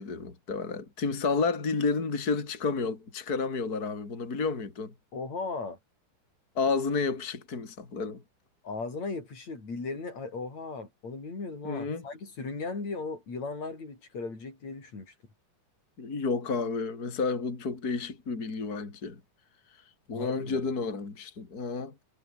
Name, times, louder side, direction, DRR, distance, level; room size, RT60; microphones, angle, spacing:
voice 1, 0.0-4.9 6.6-8.2 11.6-12.0 16.0-19.2 20.1-21.9, left 4 dB, 30° left, 3.9 m, -31 dB
voice 2, 5.1-5.8 8.6-15.1 20.1-20.7, left 3 dB, 55° left, 8.8 m, -37 dB
omnidirectional pair, 3.7 m